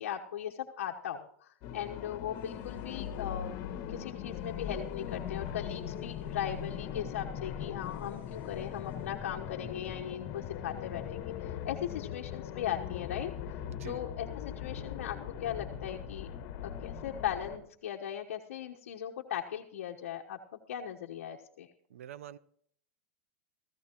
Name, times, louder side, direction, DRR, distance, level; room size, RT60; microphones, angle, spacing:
voice 1, 0.0-3.5 3.9-14.3 14.6-16.3 16.6-21.7, left 10 dB, 80° left, 1 dB, 1.1 m, -38 dB
sound 1, 1.6-17.6, left 9 dB, 45° left, 1.8 m, -40 dB
Engine damaged sparks, 2.3-9.9, right 1 dB, 20° right, 6.5 m, -66 dB
sound 2, 5.1-7.8, left 14 dB, 65° left, 0.4 m, -49 dB
voice 2, 13.7-14.0 21.9-22.4, right 11 dB, 85° right, 18 dB, 0.6 m, -46 dB
18.0 x 15.0 x 3.0 m, 0.63 s
supercardioid pair, 130°, 7 cm